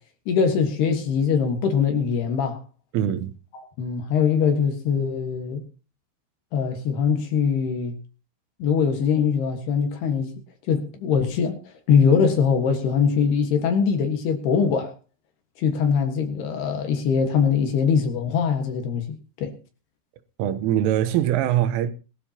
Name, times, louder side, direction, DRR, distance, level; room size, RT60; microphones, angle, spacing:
voice 1, 0.3-2.6 3.5-5.7 6.5-8.0 8.6-10.4 10.7-14.9 15.6-19.5, left 6 dB, 65° left, 3.2 m, -22 dB
voice 2, 2.9-3.3 20.4-21.9, right 11 dB, 80° right, 3.5 m, -22 dB
21.5 x 13.0 x 2.9 m
omnidirectional pair, 5.8 m